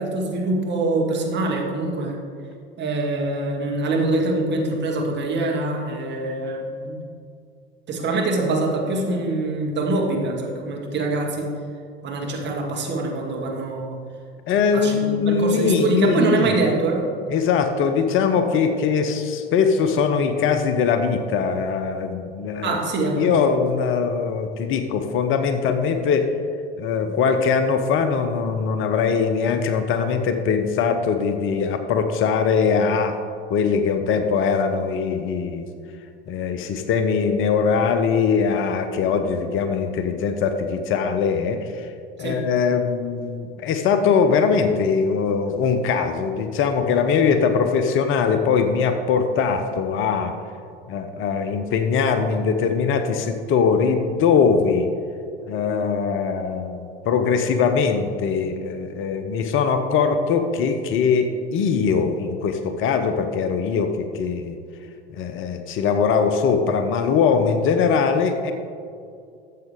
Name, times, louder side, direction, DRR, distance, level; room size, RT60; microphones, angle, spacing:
voice 1, 0.0-2.2 2.8-7.0 7.9-11.5 12.0-14.0 14.7-17.0 22.6-23.3 42.2-42.4, right 2 dB, 35° right, 0 dB, 2.1 m, -24 dB
voice 2, 14.5-16.5 17.3-22.8 23.2-26.3 26.7-33.2 33.5-35.7 36.3-41.9 42.2-50.3 50.9-54.9 55.5-64.6 65.1-68.5, left 6 dB, 45° left, 7 dB, 0.8 m, -21 dB
13.5 x 7.4 x 3.7 m, 2.3 s
figure-of-eight pair, 75°, 30 cm